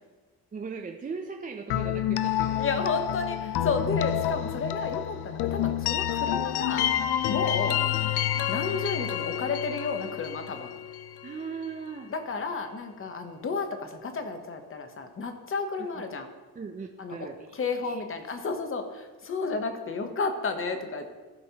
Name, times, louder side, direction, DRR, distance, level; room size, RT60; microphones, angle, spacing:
voice 1, 0.5-2.6 11.2-12.1 15.8-16.0 16.6-18.1, right 5 dB, 25° right, 3 dB, 0.4 m, -39 dB
sound 1, 1.7-11.5, left 11 dB, 80° left, 0.5 m, -29 dB
voice 2, 2.6-6.8 7.3-7.8 8.5-10.7 12.1-16.3 17.0-17.1 17.5-21.1, left 4 dB, 35° left, 6 dB, 0.8 m, -32 dB
15.0 x 5.8 x 2.8 m, 1.3 s
wide cardioid pair, 155°, 39 cm